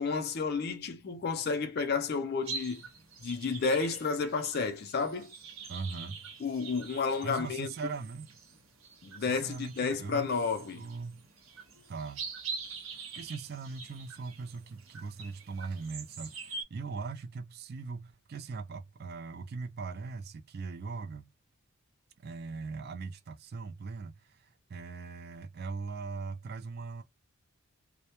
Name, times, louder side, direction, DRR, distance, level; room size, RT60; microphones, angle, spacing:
voice 1, 0.0-2.8 3.2-5.3 6.4-7.7 9.0-10.9, left 4 dB, 45° left, 0.4 m, -31 dB
sound 1, 2.4-16.6, right 4 dB, 70° right, 0.7 m, -45 dB
voice 2, 5.7-6.2 7.2-8.3 9.2-10.3 10.8-11.3 11.9-12.3 12.9-21.3 22.2-27.0, right 4 dB, 45° right, 0.3 m, -40 dB
2.2 x 2.0 x 2.9 m
head